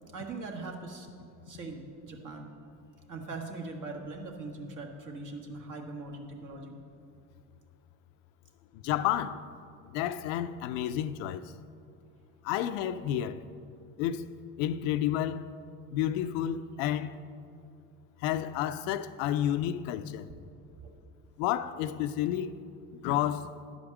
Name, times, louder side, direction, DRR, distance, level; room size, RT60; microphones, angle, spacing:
voice 1, 0.1-1.1 1.5-2.5 3.1-6.8 20.8-20.9, right 3 dB, 50° right, 1.7 m, -41 dB
voice 2, 8.7-9.5 9.9-11.5 12.4-13.4 14.0-14.3 14.6-15.4 15.9-17.2 18.2-20.3 21.4-22.6 22.9-23.5, left 11 dB, 80° left, 0.5 m, -30 dB
11.0 x 5.1 x 7.1 m
supercardioid pair, 80°, 40 cm